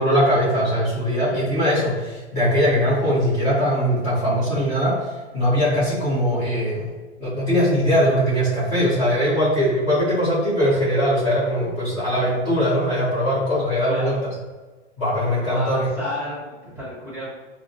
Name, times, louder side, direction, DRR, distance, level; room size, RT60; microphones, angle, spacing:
voice 1, 0.0-6.9 7.2-14.3 15.0-15.9, equal, 25° left, -11 dB, 1.1 m, -21 dB
voice 2, 13.9-14.2 15.4-17.4, left 1 dB, 5° right, -9 dB, 1.3 m, -31 dB
5.5 x 2.1 x 2.6 m, 1.3 s
hypercardioid pair, 155°, 35 cm